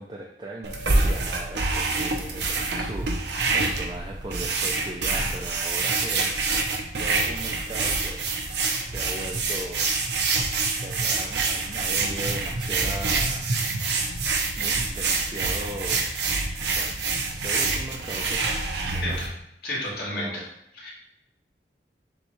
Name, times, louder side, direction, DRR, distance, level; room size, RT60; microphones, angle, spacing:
voice 1, 0.0-8.4 8.7-9.9 10.3-14.2 14.6-16.1 16.6-17.0 17.3-19.2 19.9-20.5, right 1 dB, 25° right, -2 dB, 0.4 m, -39 dB
sound 1, 0.6-19.3, right 3 dB, 75° right, 0.7 m, -26 dB
voice 2, 19.6-20.4 20.8-20.9, left 1 dB, 60° left, -5 dB, 1.5 m, -31 dB
6.7 x 2.3 x 3.0 m, 0.81 s
head